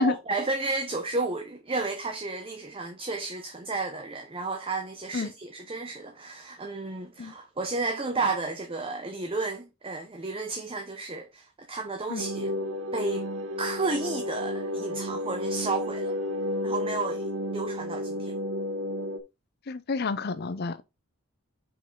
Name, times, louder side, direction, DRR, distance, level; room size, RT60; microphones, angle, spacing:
voice 1, 0.0-12.5 12.9-13.3 13.6-16.1 16.6-18.3, right 3 dB, 25° right, 0.8 m, -32 dB
sound 1, 12.2-19.2, left 1 dB, 75° right, 0.9 m, -32 dB
voice 2, 19.7-20.8, left 3 dB, 50° left, 0.6 m, -29 dB
5.8 x 5.4 x 3.8 m
head